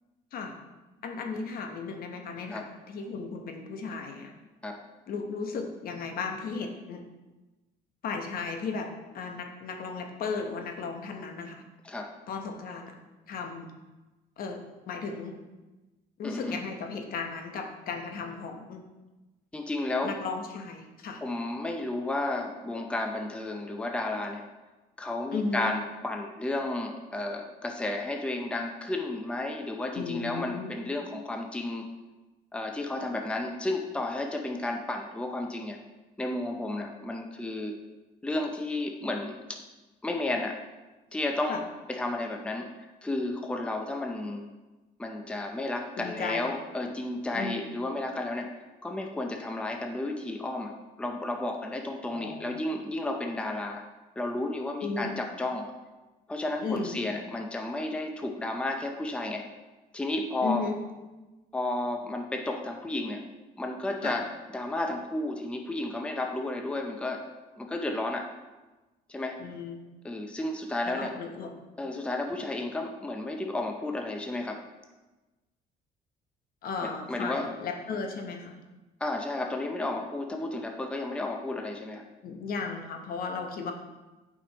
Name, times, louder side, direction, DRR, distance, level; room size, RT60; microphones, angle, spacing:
voice 1, 1.0-4.3 5.1-7.0 8.0-11.6 12.3-12.9 13.3-13.7 14.4-15.4 16.2-18.8 20.0-21.2 25.3-25.7 30.0-30.8 41.5-41.6 46.0-46.5 47.3-47.6 52.1-52.6 54.8-55.1 56.6-56.9 60.4-60.7 64.0-64.1 69.4-69.8 70.9-71.5 76.6-78.6 82.2-83.7, left 4 dB, 60° left, 4 dB, 1.0 m, -35 dB
voice 2, 16.2-16.6 19.5-20.1 21.2-24.4 25.0-31.9 32.5-35.8 36.2-37.8 38.2-39.6 40.0-40.6 41.1-41.6 41.9-42.7 43.0-44.4 45.0-48.5 48.8-53.8 54.2-55.7 56.3-59.4 59.9-60.7 61.5-63.2 63.6-64.3 64.5-67.2 67.6-68.3 69.1-69.4 70.0-71.1 71.8-74.6 76.8-77.5 79.0-82.0, left 2 dB, 5° left, 3 dB, 0.6 m, -32 dB
8.5 x 5.1 x 3.0 m, 1.1 s
cardioid pair, 110°, 17 cm